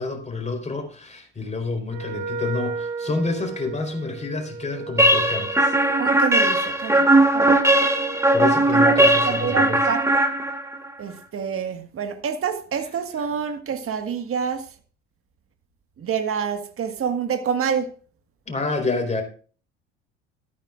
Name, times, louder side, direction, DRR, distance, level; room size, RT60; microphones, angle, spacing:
voice 1, 0.0-5.8 6.9-7.4 8.3-9.8 18.5-19.2, left 3 dB, 20° left, 4.2 m, -29 dB
Wind instrument woodwind instrument, 1.9-8.5, right 5 dB, 65° right, 1.6 m, -35 dB
sound 1, 5.0-10.9, right 1 dB, 10° right, 2.0 m, -18 dB
voice 2, 6.0-7.6 8.8-10.0 11.0-14.7 16.0-17.9, right 7 dB, 40° right, 1.7 m, -27 dB
14.0 x 13.5 x 2.5 m
hypercardioid pair, 65°, 35 cm